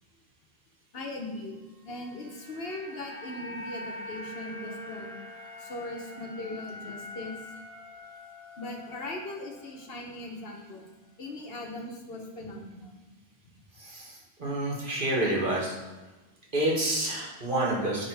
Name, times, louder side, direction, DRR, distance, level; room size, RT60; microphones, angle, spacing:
voice 1, 0.9-5.1 5.6-7.4 8.6-10.9 11.2-12.9, left 2 dB, 70° left, 1 dB, 1.3 m, -39 dB
sound 1, 1.9-10.2 10.5-10.7, left 1 dB, 5° left, 1.4 m, -44 dB
voice 2, 13.8-15.8 16.5-18.1, right 1 dB, 55° right, -3 dB, 1.8 m, -28 dB
9.8 x 3.6 x 4.8 m, 1.1 s
omnidirectional pair, 1.0 m